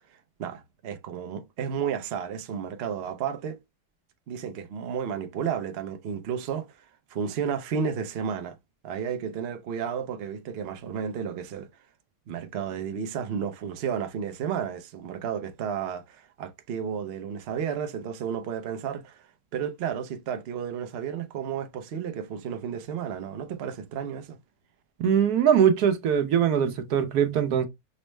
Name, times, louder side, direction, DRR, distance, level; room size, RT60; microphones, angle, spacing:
voice 1, 0.4-3.6 4.3-8.6 8.8-11.7 12.3-24.4, right 7 dB, 60° right, 0.6 m, -32 dB
voice 2, 25.0-27.6, right 8 dB, 75° right, 1.2 m, -22 dB
5.2 x 2.1 x 3.1 m
omnidirectional pair, 1.7 m